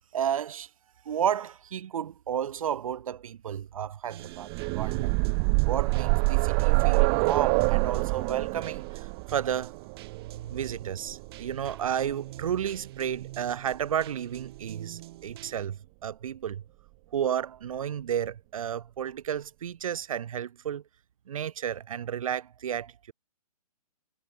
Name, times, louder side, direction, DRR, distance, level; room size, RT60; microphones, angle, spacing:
voice 1, 0.1-0.7 1.1-5.1 5.7-9.8 10.5-16.6 17.1-20.8 21.3-23.1, right 9 dB, 60° right, 2.0 m, -32 dB
sound 1, 4.1-15.7, right 17 dB, 40° right, 3.3 m, -47 dB
sound 2, 4.3-12.1 13.2-13.3 13.7-13.8, right 40 dB or more, 20° right, 0.4 m, -26 dB
hypercardioid pair, 140°, 20 cm